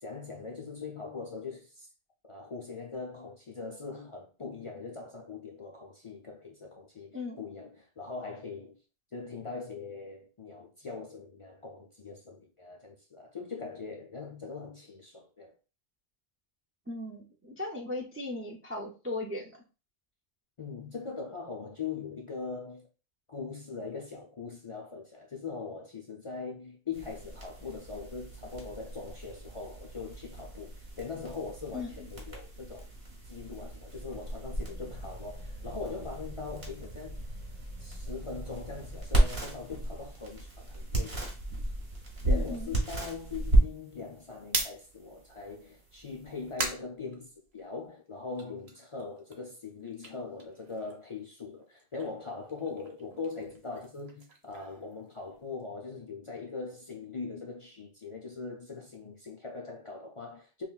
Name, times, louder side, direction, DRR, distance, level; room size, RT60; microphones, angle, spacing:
voice 1, 0.0-1.9 2.3-8.8 9.1-15.6 20.6-22.9 23.3-32.9 33.3-37.2 37.8-41.3 42.2-60.6, left 4 dB, 45° left, 0.4 m, -41 dB
voice 2, 7.1-7.4 16.9-19.6 31.7-32.1 42.3-42.8, left 2 dB, 20° right, 0.3 m, -38 dB
sound 1, 26.9-46.5, right 1 dB, 70° right, 1.4 m, -34 dB
sound 2, 44.5-47.9 48.2-51.2 51.5-55.6, right 3 dB, 90° right, 1.1 m, -41 dB
5.6 x 2.2 x 2.3 m
omnidirectional pair, 1.0 m